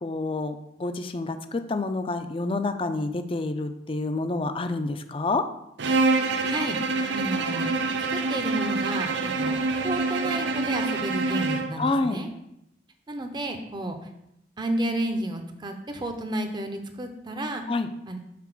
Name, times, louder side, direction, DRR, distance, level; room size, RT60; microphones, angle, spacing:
voice 1, 0.0-5.4 11.8-12.2 17.7-17.9, left 3 dB, 30° left, 9 dB, 0.5 m, -28 dB
Bowed string instrument, 5.8-11.8, right 3 dB, 90° right, 0.6 m, -26 dB
voice 2, 5.9-7.7 8.1-12.3 13.1-14.0 14.6-17.6 18.1-18.2, right 1 dB, 25° right, 6 dB, 0.7 m, -32 dB
5.9 x 4.1 x 6.1 m, 0.82 s
head